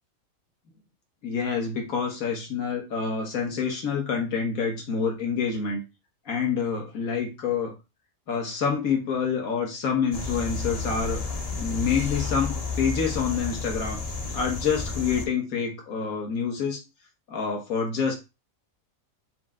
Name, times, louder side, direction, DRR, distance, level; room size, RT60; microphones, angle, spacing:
voice 1, 1.2-5.8 6.3-7.7 8.3-11.2 11.6-14.0 14.3-16.8 17.3-18.1, left 6 dB, 90° left, 1 dB, 1.6 m, -27 dB
sound 1, 10.1-15.2, left 4 dB, 40° left, 0.5 m, -31 dB
4.5 x 2.2 x 3.6 m, 0.26 s
omnidirectional pair, 1.4 m